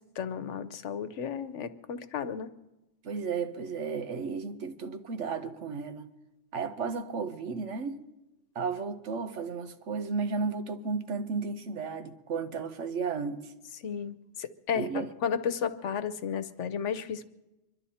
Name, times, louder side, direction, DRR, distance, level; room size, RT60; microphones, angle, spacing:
voice 1, 0.2-2.5 13.8-17.2, left 7 dB, 85° left, 1.2 m, -33 dB
voice 2, 3.0-6.1 6.5-8.0 8.5-13.5 14.7-15.1, right 5 dB, 85° right, 1.4 m, -33 dB
25.0 x 12.0 x 4.3 m
omnidirectional pair, 1.2 m